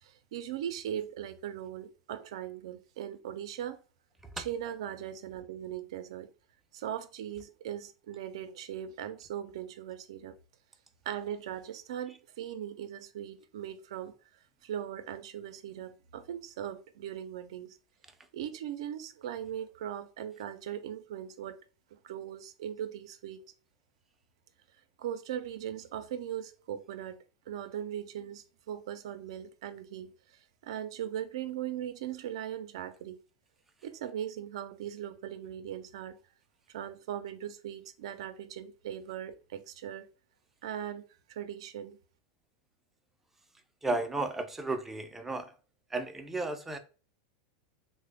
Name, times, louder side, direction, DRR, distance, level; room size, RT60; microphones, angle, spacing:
voice 1, 0.0-3.8 4.4-6.3 6.7-10.4 11.1-14.1 14.6-17.8 18.3-21.6 21.9-23.4 25.0-30.1 30.6-33.2 33.8-36.2 36.7-40.1 40.6-41.0 41.3-42.0, right 10 dB, 75° right, 0.4 m, -39 dB
voice 2, 43.8-45.5 45.9-46.8, right 2 dB, 10° right, 0.4 m, -33 dB
3.2 x 2.1 x 3.4 m
supercardioid pair, 130°, 3 cm